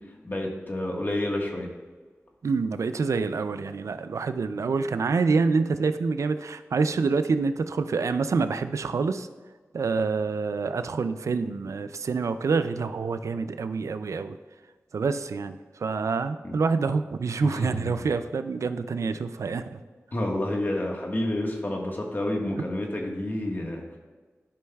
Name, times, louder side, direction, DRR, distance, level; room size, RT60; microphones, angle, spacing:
voice 1, 0.2-1.7 16.4-16.5 17.4-18.1 20.1-24.0, left 1 dB, 40° left, 0 dB, 1.4 m, -29 dB
voice 2, 2.4-9.3 9.7-14.4 14.9-19.8, right 4 dB, 75° right, 11 dB, 0.3 m, -27 dB
11.5 x 5.4 x 2.3 m, 1.4 s
cardioid pair, 50°, 5 cm